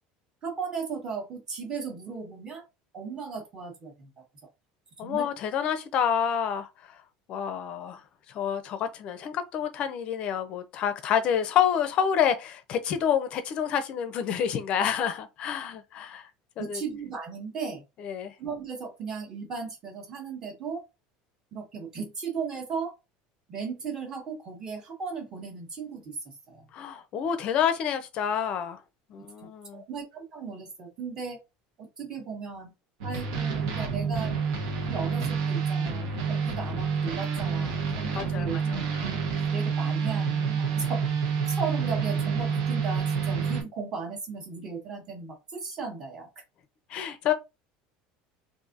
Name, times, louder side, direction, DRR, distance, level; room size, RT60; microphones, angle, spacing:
voice 1, 0.4-2.6 2.9-4.2 5.0-5.3 16.6-17.8 18.4-20.8 21.5-22.9 23.5-26.1 26.5-26.6 29.2-29.3 29.7-31.4 31.8-32.7 33.0-34.4 34.8-38.7 39.0-39.2 39.5-41.0 41.5-46.3, right 5 dB, 20° right, 1.0 m, -36 dB
voice 2, 5.0-6.7 7.3-8.0 8.3-16.3 16.6-16.8 18.0-18.3 26.7-28.8 29.1-29.8 38.1-38.8 46.9-47.3, left 8 dB, 35° left, 0.5 m, -28 dB
sound 1, 33.0-43.6, right 6 dB, 75° right, 1.1 m, -28 dB
3.9 x 2.6 x 2.5 m
cardioid pair, 175°, 3 cm